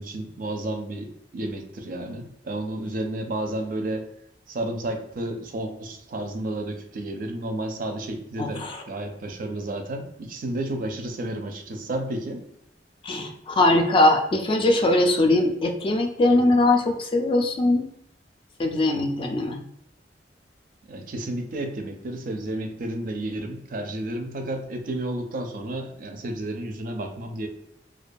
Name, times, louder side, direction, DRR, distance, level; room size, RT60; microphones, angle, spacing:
voice 1, 0.0-4.0 4.5-12.4 20.9-27.5, right 1 dB, 50° right, 5 dB, 0.4 m, -31 dB
voice 2, 8.4-8.8 13.0-17.9 18.6-19.6, left 2 dB, 30° left, 4 dB, 0.3 m, -21 dB
2.3 x 2.2 x 2.5 m, 0.78 s
head